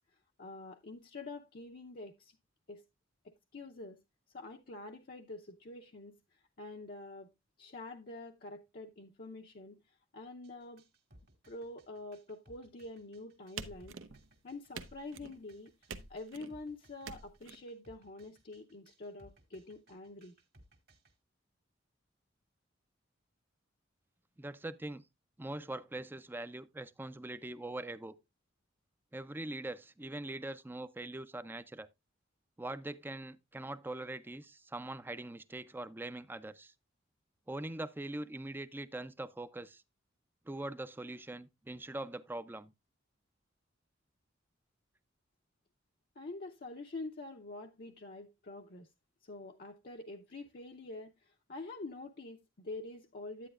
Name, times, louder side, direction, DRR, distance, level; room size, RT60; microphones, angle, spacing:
voice 1, 0.4-2.4 2.7-2.8 3.2-4.0 4.3-6.2 6.6-7.3 7.6-9.8 10.1-10.8 11.5-14.0 14.4-15.7 16.1-20.3 46.2-48.9 49.2-53.5, left 2 dB, 50° left, 0.6 m, -46 dB
sound 1, 10.4-21.1, right 1 dB, 55° right, 1.7 m, -63 dB
sound 2, 13.6-14.3 14.7-15.4 15.9-16.5 17.0-17.6, right 5 dB, 80° right, 0.8 m, -46 dB
voice 2, 24.4-25.0 25.4-28.1 29.1-31.9 32.6-36.7 37.5-39.8 40.5-42.7, right 2 dB, 10° right, 0.4 m, -42 dB
10.0 x 8.8 x 2.4 m
head